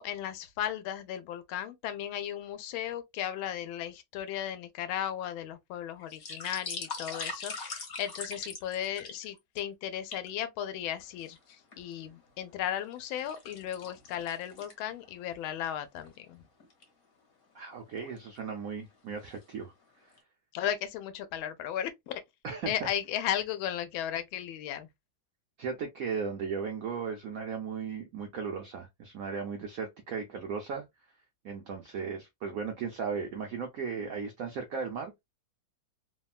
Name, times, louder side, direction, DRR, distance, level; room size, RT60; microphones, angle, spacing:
voice 1, 0.0-16.4 20.5-22.2 22.7-24.9, left 10 dB, 85° left, 1.4 m, -35 dB
sound 1, 6.0-9.6 10.1-10.3 11.0-11.8 12.3-15.1 15.5-15.6 16.0-16.2 16.6-16.8 17.7-18.2 18.7-18.9 19.2-19.8 20.2-20.3, left 4 dB, 50° left, 1.3 m, -41 dB
voice 2, 17.5-20.1 22.4-22.7 25.6-30.8 31.4-35.1, right 6 dB, 75° right, 0.7 m, -36 dB
3.4 x 2.2 x 2.3 m
omnidirectional pair, 2.2 m